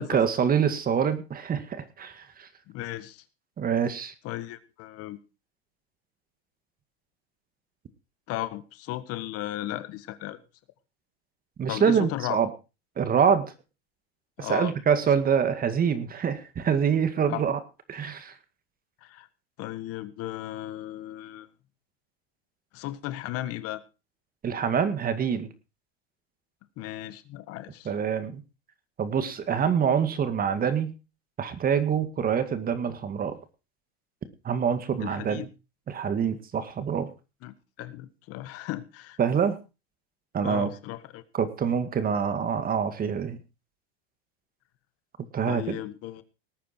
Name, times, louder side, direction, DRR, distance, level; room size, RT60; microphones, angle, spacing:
voice 1, 0.0-2.5 3.6-4.1 11.6-12.5 13.0-13.5 14.4-17.6 17.9-18.3 24.4-25.5 27.9-28.4 29.0-30.9 31.4-33.4 34.4-35.5 35.9-37.1 39.2-39.6 40.3-40.7 41.3-43.4 45.3-45.8, right 7 dB, 30° right, 11 dB, 2.1 m, -25 dB
voice 2, 2.7-3.2 4.2-5.2 8.3-10.4 11.7-12.4 14.4-14.7 17.3-17.4 19.0-19.3 19.6-21.5 22.7-23.8 26.8-27.9 35.0-35.5 37.4-39.2 40.4-41.2 45.5-46.2, left 15 dB, 50° left, 13 dB, 1.5 m, -35 dB
19.0 x 9.3 x 4.4 m, 0.31 s
supercardioid pair, 110°, 31 cm